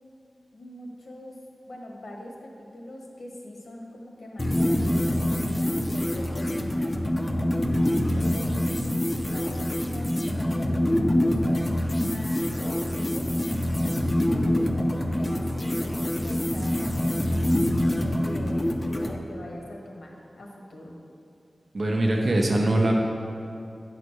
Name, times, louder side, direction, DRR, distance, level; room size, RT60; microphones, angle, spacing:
voice 1, 0.5-1.3 1.7-6.9 7.5-7.8 8.2-10.7 11.0-18.6 18.9-21.0, left 1 dB, 75° left, -1 dB, 1.3 m, -41 dB
sound 1, 4.4-19.2, left 1 dB, 25° left, 0.6 m, -25 dB
voice 2, 21.7-22.9, right 1 dB, 60° right, 0 dB, 1.0 m, -22 dB
8.2 x 4.2 x 6.3 m, 2.5 s
wide cardioid pair, 75°, 0 cm